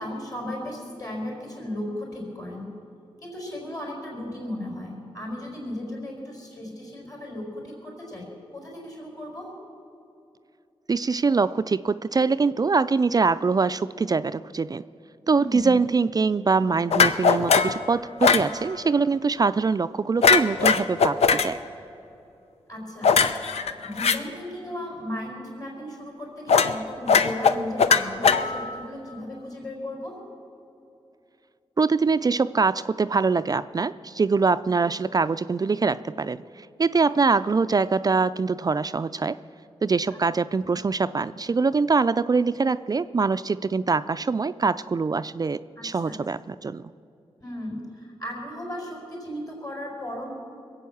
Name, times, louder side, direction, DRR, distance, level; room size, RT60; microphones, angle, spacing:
voice 1, 0.0-2.7 3.2-9.6 15.4-15.8 18.3-18.6 22.7-30.2 40.1-40.2 40.6-40.7 45.8-46.2 47.4-50.3, left 1 dB, 35° left, -2 dB, 4.5 m, -36 dB
voice 2, 10.9-14.8 15.3-21.6 31.8-39.4 39.8-46.9, right 4 dB, 35° right, 13 dB, 0.4 m, -23 dB
sound 1, 16.9-17.8 18.2-18.5 20.2-21.5 23.0-24.2 26.5-26.8 27.1-28.8, left 5 dB, 80° left, 0.6 m, -19 dB
21.5 x 8.4 x 7.1 m, 2.7 s
cardioid pair, 60°, 11 cm